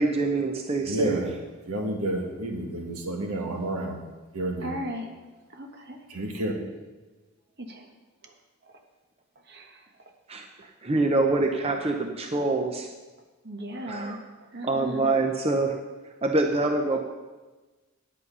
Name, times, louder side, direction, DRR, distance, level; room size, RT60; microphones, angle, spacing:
voice 1, 0.0-1.2 10.3-10.5 10.8-12.9 13.9-14.2 14.6-15.7 16.2-17.0, right 2 dB, 25° right, 4 dB, 0.5 m, -25 dB
voice 2, 0.8-1.3 1.7-4.0 4.3-4.8 6.1-6.5, right 1 dB, 85° right, 2 dB, 1.7 m, -30 dB
voice 3, 4.6-5.1 5.5-6.0 7.6-7.9 9.5-9.8 13.4-14.2 14.5-15.1, equal, 45° right, 3 dB, 1.2 m, -36 dB
9.4 x 8.5 x 5.4 m, 1.2 s
head